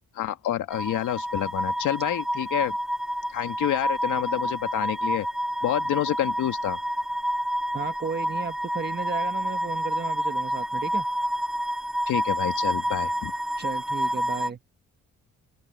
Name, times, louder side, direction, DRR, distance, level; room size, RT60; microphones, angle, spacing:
voice 1, 0.2-2.8 3.3-5.3 5.6-6.8 12.1-13.3, left 12 dB, 80° left, 2.1 m, -28 dB
sound 1, 0.7-14.5, equal, ahead, 0.5 m, -28 dB
voice 2, 7.7-11.1 13.6-14.6, right 5 dB, 35° right, 2.0 m, -34 dB
open air
cardioid pair, 90°, 30 cm